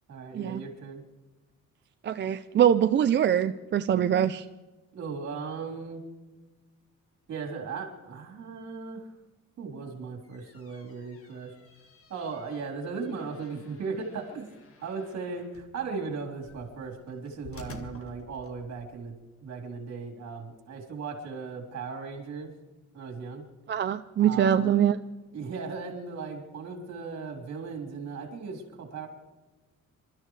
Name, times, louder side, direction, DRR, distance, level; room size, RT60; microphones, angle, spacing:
voice 1, 0.1-1.0 4.9-6.0 7.3-9.1 9.6-11.6 12.1-14.5 14.8-19.2 19.4-22.5 22.9-23.4 24.2-24.8 25.3-29.1, right 4 dB, 55° right, 1 dB, 3.7 m, -37 dB
voice 2, 2.0-4.5 23.7-25.0, right 9 dB, 35° right, 8 dB, 0.4 m, -23 dB
sound 1, 10.2-18.9, left 2 dB, 45° left, 1.8 m, -51 dB
27.5 x 13.0 x 3.3 m, 1.2 s
cardioid pair, 170°, 31 cm